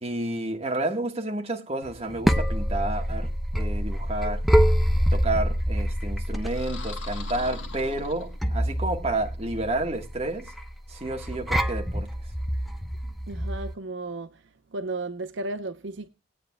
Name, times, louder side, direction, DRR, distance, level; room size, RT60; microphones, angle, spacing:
voice 1, 0.0-4.4 5.1-10.5 10.9-12.1, right 2 dB, 30° right, 1.4 m, -30 dB
sound 1, 1.9-13.7, equal, ahead, 0.6 m, -26 dB
sound 2, 6.4-8.7, left 5 dB, 80° left, 1.5 m, -42 dB
voice 2, 13.3-14.4 14.7-16.1, right 2 dB, 75° right, 0.7 m, -34 dB
19.0 x 9.0 x 2.2 m
head